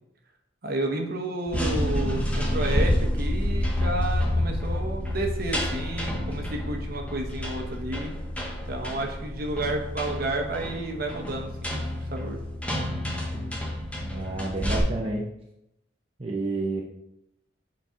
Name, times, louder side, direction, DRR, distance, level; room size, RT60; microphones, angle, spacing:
voice 1, 0.6-8.1 8.6-12.4, right 2 dB, 50° right, 2 dB, 1.0 m, -31 dB
sound 1, 1.5-14.8, left 1 dB, 5° left, 0.7 m, -29 dB
voice 2, 14.0-15.2 16.2-16.8, right 2 dB, 30° right, -3 dB, 0.6 m, -30 dB
6.8 x 4.2 x 3.7 m, 0.82 s
head